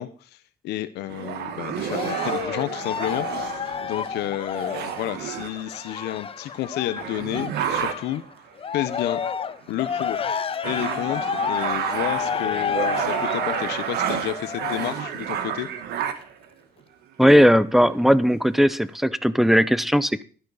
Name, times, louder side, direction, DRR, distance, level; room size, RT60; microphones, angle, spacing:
voice 1, 0.0-8.2 8.7-9.2 9.7-10.3 10.6-15.7, left 14 dB, 80° left, 12 dB, 0.9 m, -31 dB
sound 1, 1.1-6.1 6.6-6.7 7.0-8.2 8.9-9.3 9.7-16.4 17.3-17.4 17.7-18.4, right 8 dB, 75° right, 1.4 m, -30 dB
Cheering, 1.9-8.2 8.6-15.2 15.8-15.9, left 7 dB, 35° left, 0.8 m, -30 dB
voice 2, 17.2-20.2, equal, ahead, 17 dB, 0.6 m, -18 dB
11.5 x 11.0 x 4.1 m, 0.41 s
cardioid pair, 110°, 17 cm